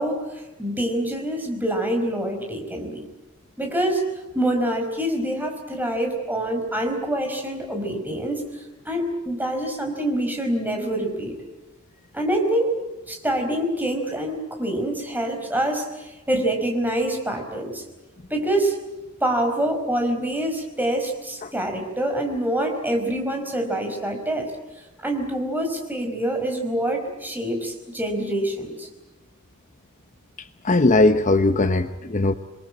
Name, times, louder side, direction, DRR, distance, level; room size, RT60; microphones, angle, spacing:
voice 1, 0.0-3.1 3.6-4.0 4.3-11.3 12.1-12.8 13.1-17.8 18.3-18.8 19.2-24.5 25.0-28.9, right 1 dB, 10° right, 3 dB, 4.9 m, -26 dB
voice 2, 30.4-32.3, left 2 dB, 35° left, 9 dB, 0.9 m, -19 dB
28.0 x 22.0 x 8.6 m, 1.1 s
head